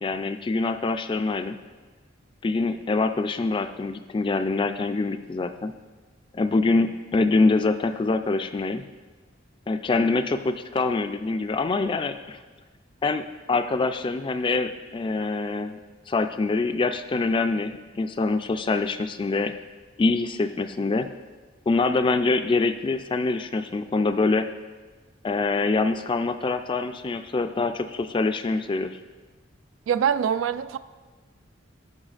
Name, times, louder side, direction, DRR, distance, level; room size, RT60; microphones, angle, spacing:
voice 1, 0.0-1.6 2.4-5.7 6.3-8.9 9.7-12.4 13.0-15.8 16.1-19.5 20.0-21.1 21.7-24.5 25.2-29.0, left 3 dB, 25° left, 9 dB, 0.3 m, -25 dB
voice 2, 29.9-30.8, right 8 dB, 80° right, 14 dB, 0.3 m, -24 dB
15.0 x 5.6 x 2.4 m, 1.4 s
head